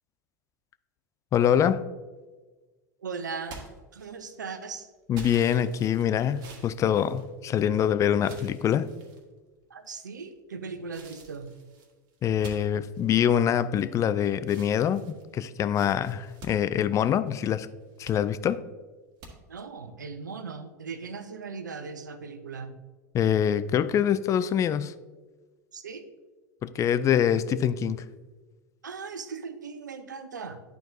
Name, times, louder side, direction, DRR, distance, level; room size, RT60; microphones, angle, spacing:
voice 1, 1.3-1.8 5.1-8.9 12.2-17.7 18.0-18.6 23.1-24.9 26.6-28.0, left 9 dB, 35° left, 0.4 m, -24 dB
voice 2, 3.0-3.6 3.9-4.9 9.7-11.5 19.5-22.7 25.7-26.0 28.8-30.6, right 5 dB, 90° right, 0.6 m, -38 dB
sound 1, 3.4-4.4 5.1-7.8 8.2-9.2 9.8-10.3 10.9-14.1 14.4-17.4 17.8-18.2 19.2-19.3, right 3 dB, 50° right, 1.6 m, -49 dB
10.5 x 4.5 x 2.7 m
hypercardioid pair, 85°, 10 cm